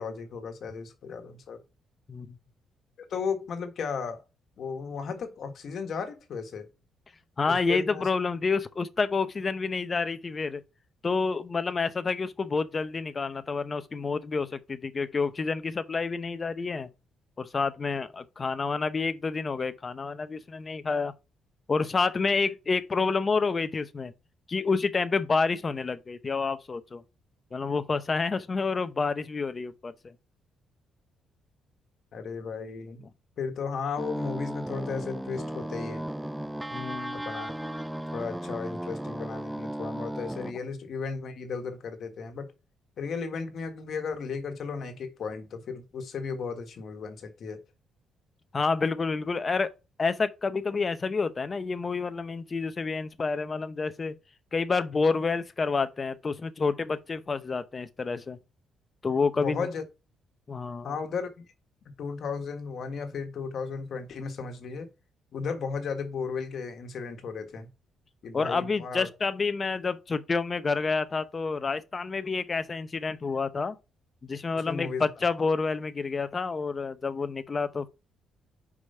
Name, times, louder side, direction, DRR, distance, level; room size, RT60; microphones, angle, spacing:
voice 1, 0.0-1.6 3.1-4.2 4.6-6.7 7.5-8.1 32.1-33.0 33.4-36.1 37.1-37.5 38.1-42.5 43.0-47.6 59.3-59.8 60.8-61.4 62.0-64.9 65.3-67.7 68.2-69.1 74.5-75.1, left 5 dB, 60° left, 1.6 m, -35 dB
voice 2, 7.4-10.6 11.0-16.9 17.4-21.1 21.7-24.1 24.5-27.0 27.5-30.1 36.7-37.2 48.5-49.7 50.0-54.2 54.5-58.4 59.0-59.7 60.5-60.9 68.3-73.7 74.3-77.9, left 4 dB, 35° left, 0.8 m, -29 dB
sound 1, 34.0-40.5, right 1 dB, 5° right, 0.4 m, -35 dB
5.1 x 4.9 x 5.5 m
cardioid pair, 90°, 0 cm